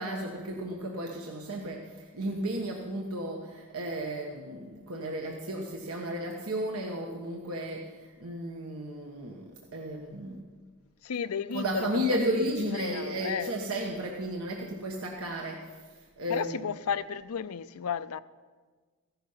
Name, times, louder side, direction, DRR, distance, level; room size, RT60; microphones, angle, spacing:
voice 1, 0.0-10.5 11.5-16.7, right 1 dB, 85° right, 1.4 m, -34 dB
voice 2, 11.0-12.1 12.4-13.5 16.3-18.2, left 7 dB, 85° left, 0.5 m, -33 dB
15.5 x 11.5 x 5.7 m
head